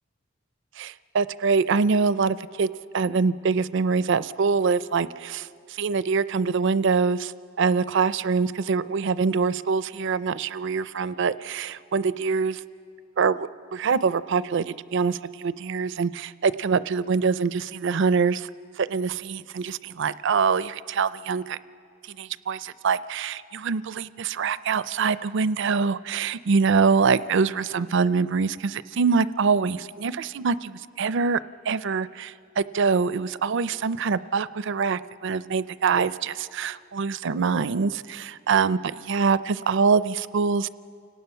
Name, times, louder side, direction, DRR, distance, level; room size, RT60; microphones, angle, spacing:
voice 1, 0.8-2.7 2.9-7.3 7.6-12.6 13.2-18.5 18.8-21.6 22.1-31.4 31.7-40.7, right 5 dB, 65° right, 16 dB, 0.5 m, -24 dB
29.5 x 18.5 x 5.7 m, 2.4 s
head